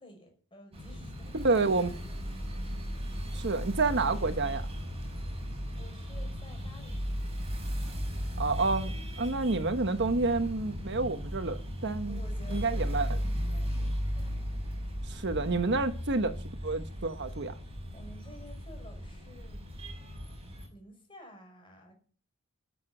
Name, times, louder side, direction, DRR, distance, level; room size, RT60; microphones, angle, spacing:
voice 1, 0.0-1.6 2.0-2.2 5.8-7.3 12.1-14.4 17.9-19.6 20.7-21.9, equal, 25° left, 5.7 m, -53 dB
sound 1, 0.7-20.7, equal, 30° right, 5.5 m, -36 dB
voice 2, 1.3-1.9 3.3-4.6 8.4-12.2 12.5-13.2 15.1-17.5, right 3 dB, 55° right, 1.1 m, -29 dB
13.5 x 8.1 x 7.7 m
head